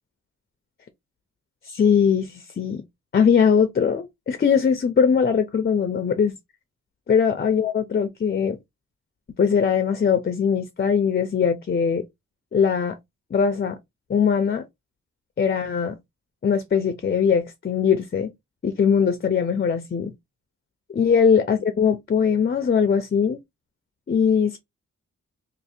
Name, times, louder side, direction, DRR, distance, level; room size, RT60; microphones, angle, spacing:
voice 1, 1.7-2.8 3.1-6.3 7.1-8.6 9.4-12.0 12.5-13.0 13.3-13.8 14.1-14.6 15.4-15.9 16.4-18.3 18.6-20.1 20.9-23.4 24.1-24.6, left 7 dB, 35° left, 0.5 m, -21 dB
2.7 x 2.6 x 4.1 m
wide cardioid pair, 150°, 29 cm